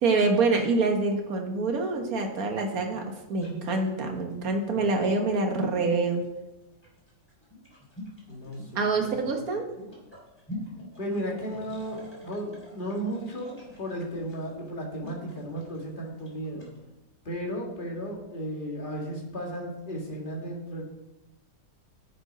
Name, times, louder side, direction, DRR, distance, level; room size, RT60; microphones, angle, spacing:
voice 1, 0.0-3.0 3.3-6.2 8.7-9.7, right 3 dB, 55° right, 3 dB, 1.6 m, -26 dB
sound 1, 2.0-16.8, left 1 dB, 5° left, 3.2 m, -46 dB
voice 2, 8.3-9.3 11.0-16.6 17.3-20.8, equal, 30° left, -1 dB, 1.9 m, -35 dB
9.9 x 6.5 x 5.1 m, 0.98 s
omnidirectional pair, 1.9 m